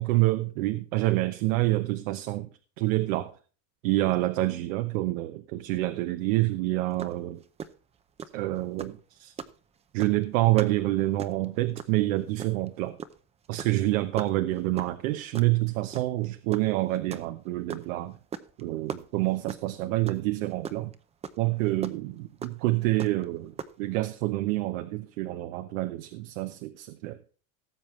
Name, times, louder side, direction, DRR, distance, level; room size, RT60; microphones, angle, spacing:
voice 1, 0.0-2.5 2.8-3.4 3.8-7.4 8.3-9.3 9.9-13.0 13.5-18.2 18.6-20.9 21.4-27.2, right 18 dB, 75° right, 1.1 m, -27 dB
sound 1, 7.0-7.2 7.4-7.7 8.2-8.4 8.8-9.0 9.4-9.6 10.0-10.2 10.6-10.8 11.0-11.5 11.8-12.0 12.4-12.7 13.0-13.2 13.4-13.8 14.2-14.3 14.8-15.0 15.3-15.5 15.9-16.3 16.5-17.9 18.3-18.6 18.9-19.7 20.1-20.2 20.5-20.9 21.2-21.3 21.8-21.9 22.4-22.5 23.0-23.2 23.6-23.7, right 7 dB, 15° right, 0.6 m, -36 dB
18.0 x 7.4 x 3.2 m
cardioid pair, 160°, 40 cm